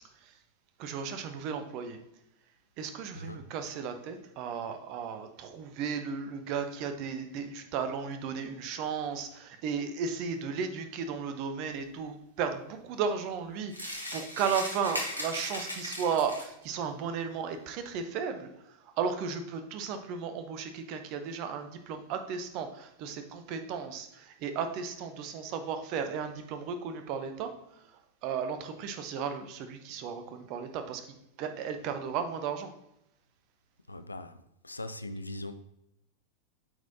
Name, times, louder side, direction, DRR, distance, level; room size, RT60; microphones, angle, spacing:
voice 1, 0.8-2.0 2.8-18.5 19.0-27.5 28.2-31.0 31.4-32.7, right 6 dB, 40° right, 0.7 m, -34 dB
voice 2, 3.1-3.5 33.9-34.4 34.6-35.6, left 1 dB, 80° left, 0.4 m, -40 dB
sound 1, 13.7-16.6, left 1 dB, 90° right, 1.1 m, -37 dB
8.8 x 4.2 x 2.8 m
figure-of-eight pair, 90°, 0 cm